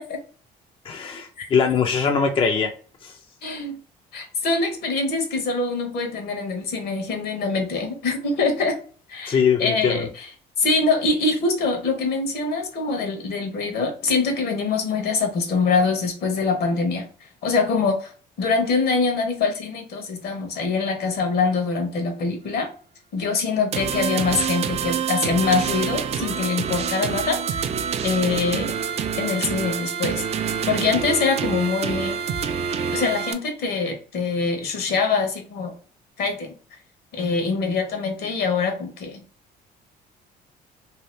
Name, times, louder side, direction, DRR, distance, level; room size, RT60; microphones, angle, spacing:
voice 1, 0.9-2.7 3.0-3.1 9.3-10.1, left 6 dB, 30° left, 5 dB, 0.4 m, -21 dB
voice 2, 3.4-3.8 4.1-8.8 9.1-10.3 10.6-17.1 17.4-18.1 18.4-22.7 23.1-27.7 28.0-28.7 29.1-30.2 30.7-32.2 32.9-35.7 36.2-36.5 37.1-39.2, left 4 dB, 70° left, 4 dB, 1.0 m, -24 dB
sound 1, 23.7-33.3, right 7 dB, 40° right, 0.4 m, -26 dB
2.7 x 2.3 x 3.2 m, 0.41 s
cardioid pair, 110°, 17 cm